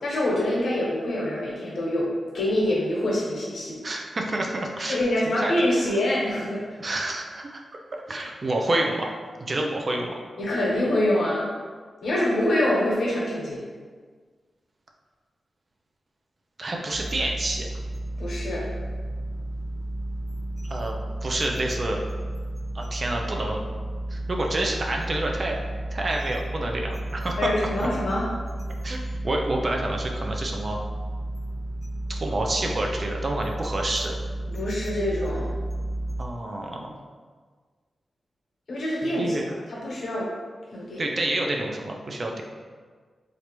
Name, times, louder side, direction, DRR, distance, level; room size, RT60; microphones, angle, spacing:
voice 1, 0.0-3.8 4.9-6.6 10.4-11.4 12.0-13.6 18.2-18.7 27.4-28.2 34.5-35.5 38.7-39.4 39.7-40.3 40.7-41.0, left 1 dB, 70° left, -5 dB, 0.9 m, -25 dB
voice 2, 3.8-5.0 5.2-5.8 6.8-7.6 7.9-9.1 9.4-10.3 16.6-17.7 20.7-22.0 22.7-23.6 24.1-25.6 25.9-27.5 27.8-27.9 28.8-30.8 32.1-34.1 36.2-36.9 39.0-39.5 41.0-42.4, right 1 dB, 45° right, 1 dB, 0.4 m, -28 dB
sound 1, 16.9-36.2, right 1 dB, 20° left, 0.4 m, -32 dB
3.3 x 2.5 x 3.0 m, 1.5 s
cardioid pair, 70°, 0 cm